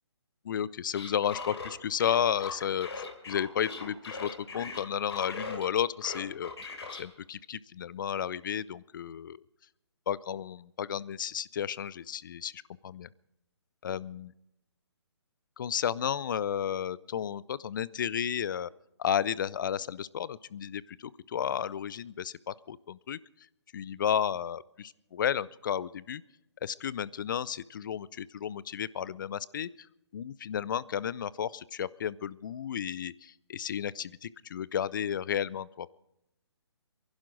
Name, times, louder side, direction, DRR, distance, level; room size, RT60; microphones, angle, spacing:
voice 1, 0.4-6.5 6.9-9.4 10.1-13.1 13.8-14.3 15.6-18.7 19.0-23.2 23.7-26.2 26.6-29.9 30.1-35.9, left 9 dB, 45° left, 21 dB, 0.5 m, -33 dB
sound 1, 0.9-5.7 6.0-7.0, left 4 dB, 65° left, 3.5 m, -40 dB
24.0 x 11.5 x 4.8 m, 0.82 s
hypercardioid pair, 150°, 15 cm